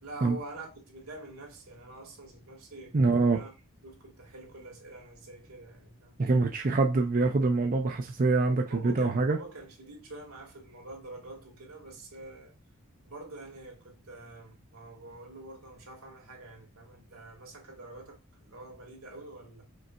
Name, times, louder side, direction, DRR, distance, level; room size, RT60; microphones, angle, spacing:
voice 1, 0.0-3.5 3.8-6.3 8.6-12.5 13.0-19.6, right 2 dB, 90° right, 1.8 m, -46 dB
voice 2, 2.9-3.4 6.2-9.4, right 3 dB, 40° right, 0.4 m, -25 dB
5.1 x 4.0 x 2.3 m
head